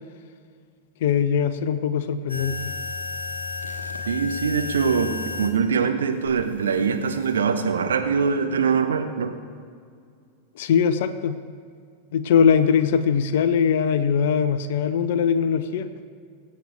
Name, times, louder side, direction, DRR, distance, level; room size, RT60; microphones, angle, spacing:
voice 1, 1.0-2.7 10.6-11.4 12.1-15.9, left 7 dB, 55° left, 11 dB, 0.7 m, -21 dB
sound 1, 2.3-5.6 6.2-7.3, left 4 dB, 80° left, 1.2 m, -33 dB
voice 2, 4.1-9.3, right 6 dB, 65° right, 6 dB, 1.1 m, -23 dB
23.0 x 8.5 x 3.5 m, 2.2 s
figure-of-eight pair, 90°, 0 cm